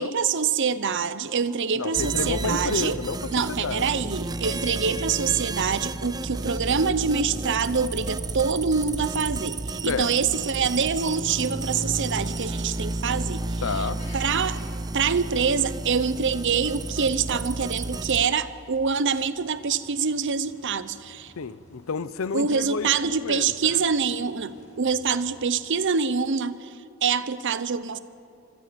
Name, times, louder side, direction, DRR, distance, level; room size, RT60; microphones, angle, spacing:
voice 1, 0.0-3.0 3.3-13.9 14.1-14.6 14.9-21.3 22.3-26.7 27.0-28.0, right 6 dB, 60° right, 0.7 m, -25 dB
voice 2, 1.7-3.8 9.8-10.1 13.6-14.0 21.4-23.8, left 4 dB, 70° left, 0.6 m, -30 dB
sound 1, 1.9-18.3, right 2 dB, 20° right, 0.5 m, -32 dB
sound 2, 9.5-25.4, left 1 dB, 35° left, 6.9 m, -54 dB
26.0 x 21.5 x 5.2 m
head